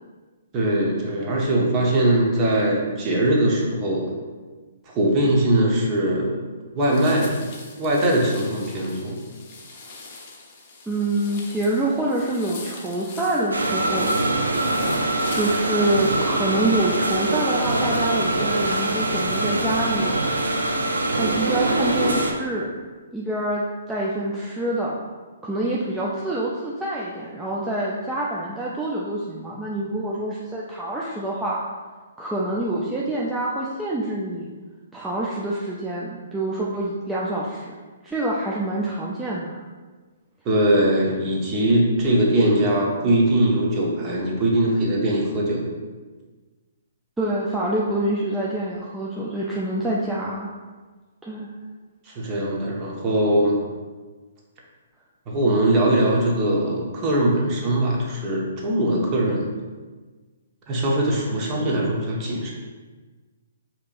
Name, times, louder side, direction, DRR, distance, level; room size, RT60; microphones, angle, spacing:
voice 1, 0.5-4.1 4.9-6.4 6.7-7.3 7.8-9.2 40.4-45.7 52.1-53.6 55.3-59.5 60.7-62.5, right 1 dB, 30° right, -2 dB, 0.8 m, -21 dB
sound 1, 6.8-16.1, left 3 dB, 40° left, 0.7 m, -42 dB
voice 2, 10.9-14.1 15.3-20.1 21.1-22.7 23.1-25.0 25.4-31.6 32.2-34.5 34.9-37.7 38.0-39.6 47.2-50.5 51.2-51.5 57.3-57.5, right 1 dB, 5° right, -6 dB, 0.4 m, -26 dB
sound 2, 13.5-22.3, right 2 dB, 85° right, 0.4 m, -23 dB
4.5 x 2.9 x 2.5 m, 1.4 s
figure-of-eight pair, 130°, 0 cm